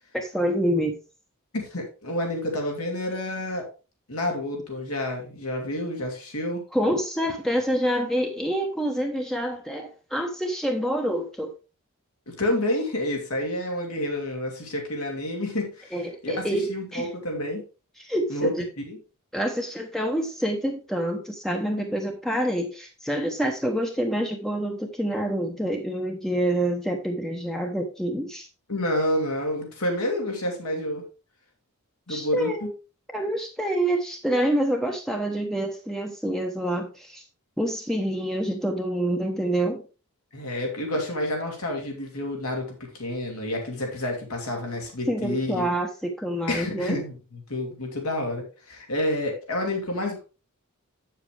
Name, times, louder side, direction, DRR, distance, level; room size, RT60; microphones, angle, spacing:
voice 1, 0.1-1.0 6.7-11.5 15.9-17.1 18.0-18.6 19.3-28.5 32.1-32.7 33.1-37.2 37.6-39.8 45.1-47.0, right 1 dB, ahead, 2 dB, 0.9 m, -27 dB
voice 2, 1.5-3.7 4.1-6.6 12.3-15.9 16.2-17.6 18.3-19.0 28.7-31.0 32.1-32.7 40.3-45.7 46.5-50.2, left 1 dB, 75° left, 2 dB, 2.7 m, -29 dB
8.5 x 7.4 x 3.4 m, 0.32 s
head